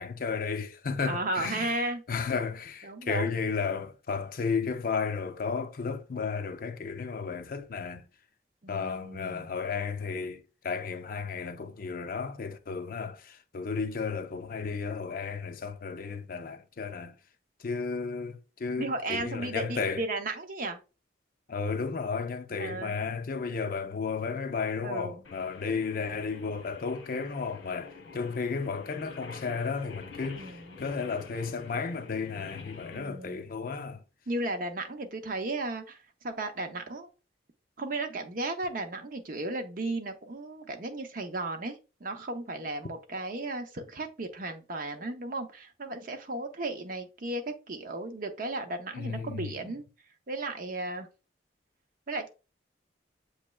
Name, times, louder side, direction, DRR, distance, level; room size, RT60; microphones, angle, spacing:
voice 1, 0.0-8.0 8.7-17.2 17.6-20.0 21.5-34.0 48.9-49.7, left 5 dB, 50° left, 0.5 m, -33 dB
voice 2, 1.1-2.0 2.8-3.3 8.6-9.5 18.8-20.8 22.6-23.1 24.8-25.2 30.4-30.8 32.9-33.4 34.3-37.1 37.8-49.8 50.3-51.1 52.1-52.3, right 2 dB, 50° right, 0.7 m, -35 dB
Singing, 25.2-33.0, left 4 dB, 80° left, 1.0 m, -47 dB
7.2 x 3.1 x 2.3 m
head